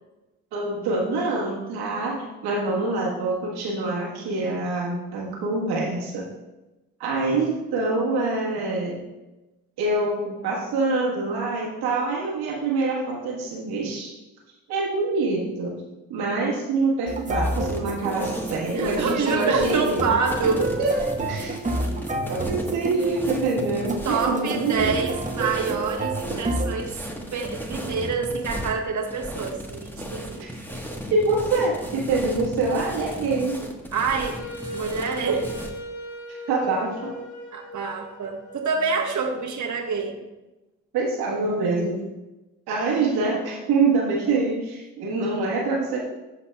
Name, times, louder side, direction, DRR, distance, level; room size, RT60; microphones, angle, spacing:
voice 1, 0.5-6.3 7.0-9.0 9.8-14.1 14.7-15.8 16.1-20.1 20.8-21.6 22.3-25.0 30.4-33.6 36.5-37.1 40.9-42.0 42.7-46.0, right 3 dB, 80° right, -3 dB, 1.4 m, -25 dB
sound 1, 17.1-26.7, right 2 dB, 20° right, 1.0 m, -30 dB
sound 2, 17.4-35.8, equal, 5° left, 1.2 m, -36 dB
voice 2, 18.7-20.6 24.0-27.0 27.3-30.4 33.9-34.4 34.7-35.5 37.5-40.2, right 5 dB, 50° right, 0 dB, 1.2 m, -26 dB
Wind instrument woodwind instrument, 34.1-39.0, equal, 70° left, 2.3 m, -37 dB
12.5 x 4.2 x 2.2 m, 1.0 s
hypercardioid pair, 40°, 38 cm